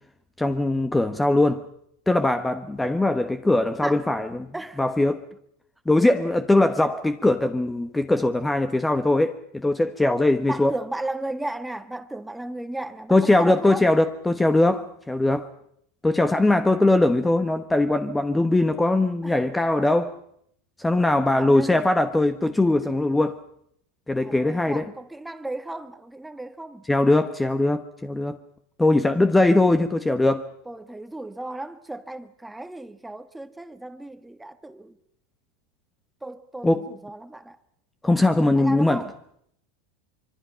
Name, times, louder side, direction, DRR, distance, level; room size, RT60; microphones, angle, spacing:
voice 1, 0.4-1.6 2.1-4.5 4.8-5.3 5.9-10.7 13.1-15.5 16.0-20.2 20.8-23.4 24.1-24.9 26.9-28.4 28.8-30.5 36.6-36.9 38.0-39.0, left 2 dB, 10° left, 1.3 m, -21 dB
voice 2, 10.5-13.9 19.2-19.4 21.3-21.8 24.2-26.8 30.7-35.0 36.2-37.6 38.6-39.1, right 2 dB, 5° right, 1.6 m, -35 dB
25.5 x 25.0 x 5.7 m
hypercardioid pair, 95°, 0 cm